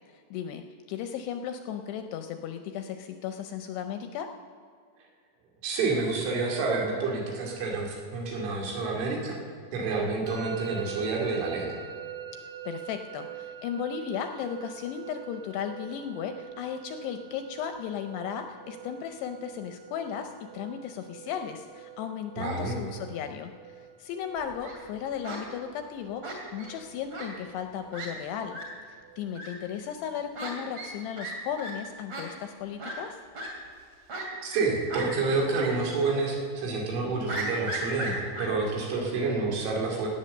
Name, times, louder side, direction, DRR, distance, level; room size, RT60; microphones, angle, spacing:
voice 1, 0.1-0.6 0.9-4.3 12.7-28.6 29.2-33.2, left 8 dB, 80° left, 7 dB, 2.5 m, -35 dB
voice 2, 5.6-9.4 9.7-11.8 22.4-22.7 34.4-40.1, right 3 dB, 85° right, -1 dB, 4.8 m, -29 dB
Musical instrument, 10.3-29.2, right 10 dB, 65° right, 1.9 m, -45 dB
Fowl, 24.4-24.8 25.2-25.4 26.2-26.7 27.1-27.3 27.6-27.7 27.9-28.1 28.5-28.6 29.3-29.5 30.3-30.5 30.8-30.9 31.2-31.3 31.6-31.7 32.1-32.2 32.8-32.9 33.3-33.5 34.1-34.6 34.9-35.1 35.5-35.7 36.0-36.1 37.3-38.5, right 2 dB, 40° right, 3.0 m, -35 dB
17.5 x 8.9 x 6.6 m, 2.2 s
omnidirectional pair, 5.3 m